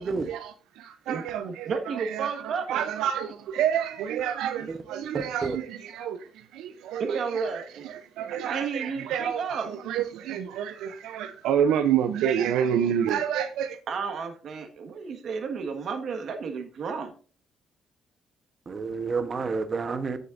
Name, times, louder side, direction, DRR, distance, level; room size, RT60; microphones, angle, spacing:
voice 1, 0.0-13.8, right 9 dB, 90° right, 9 dB, 0.6 m, -29 dB
voice 2, 1.1-3.1 7.0-7.8 8.3-9.7 13.9-17.1, right 5 dB, 60° right, 6 dB, 1.6 m, -32 dB
voice 3, 5.1-5.6 18.7-20.2, right 4 dB, 40° right, 9 dB, 1.1 m, -30 dB
14.0 x 6.7 x 2.6 m, 0.39 s
cardioid pair, 90°, 0 cm